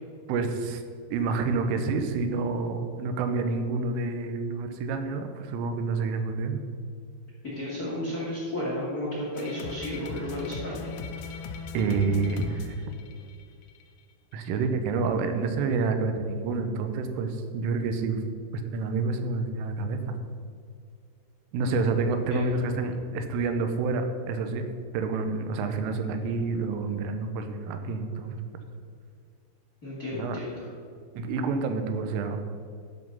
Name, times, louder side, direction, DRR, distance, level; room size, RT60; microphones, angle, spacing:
voice 1, 0.3-0.8 1.1-6.6 11.8-12.8 14.3-18.2 18.5-20.2 21.5-24.6 24.9-28.4 30.1-30.4 31.2-32.4, right 4 dB, 85° right, 7 dB, 3.4 m, -28 dB
voice 2, 7.4-11.0 21.6-22.0 22.3-22.6 29.8-30.7, left 1 dB, 30° left, -6 dB, 1.6 m, -33 dB
sound 1, 9.3-13.8, left 4 dB, 80° left, 2.8 m, -38 dB
12.5 x 6.0 x 5.5 m, 2.2 s
omnidirectional pair, 5.7 m